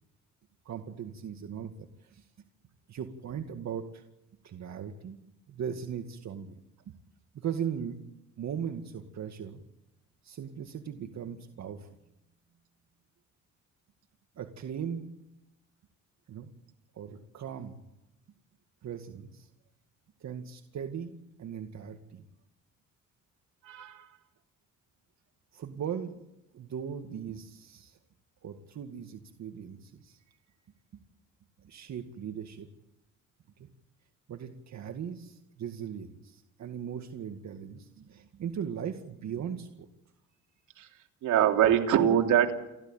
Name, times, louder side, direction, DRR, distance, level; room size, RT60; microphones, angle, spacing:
voice 1, 0.7-1.7 2.0-2.3 2.9-4.0 4.4-5.2 5.5-6.5 7.3-8.0 8.4-9.6 10.2-12.0 14.4-15.1 16.3-16.5 16.9-17.8 18.8-19.5 20.2-22.3 25.5-26.3 26.5-28.0 28.4-30.2 31.6-32.7 33.6-33.7 34.3-39.9, right 8 dB, 65° right, 5 dB, 2.2 m, -38 dB
voice 2, 23.6-24.1 40.8-40.9 41.2-42.5, right 10 dB, 80° right, 2 dB, 3.3 m, -24 dB
29.5 x 13.5 x 9.0 m, 0.92 s
cardioid pair, 90°, 30 cm